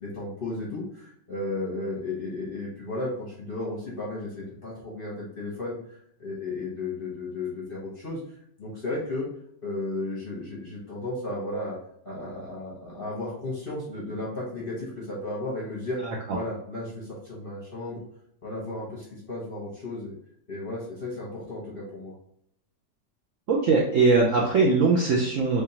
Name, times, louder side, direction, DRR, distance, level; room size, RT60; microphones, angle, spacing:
voice 1, 0.0-5.8 6.2-8.2 8.6-9.3 9.6-11.8 12.0-16.0 16.3-18.0 18.4-20.1 20.5-22.1, left 2 dB, 40° left, -5 dB, 0.9 m, -34 dB
voice 2, 23.5-25.6, right 4 dB, 65° right, -2 dB, 0.7 m, -21 dB
3.5 x 3.3 x 2.8 m, 0.70 s
omnidirectional pair, 2.0 m